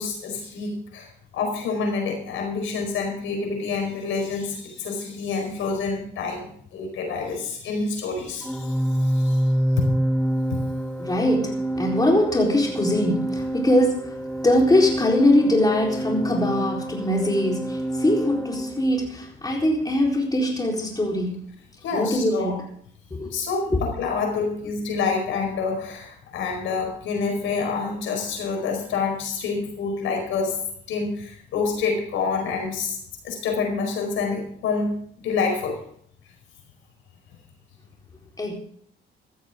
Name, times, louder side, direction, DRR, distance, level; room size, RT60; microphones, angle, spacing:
voice 1, 0.0-9.4 9.8-9.9 10.5-10.6 21.8-22.5 23.3-30.6 30.9-33.0 33.2-34.9 35.2-35.8, left 4 dB, 85° left, 2 dB, 4.8 m, -27 dB
Organ, 8.4-19.2, right 1 dB, 5° left, 1.7 m, -27 dB
voice 2, 11.0-21.6 21.9-22.7 23.1-23.3 23.7-23.8 38.4-38.5, left 1 dB, 20° left, -1 dB, 4.1 m, -22 dB
14.5 x 14.5 x 3.8 m, 0.64 s
cardioid pair, 90°, 20 cm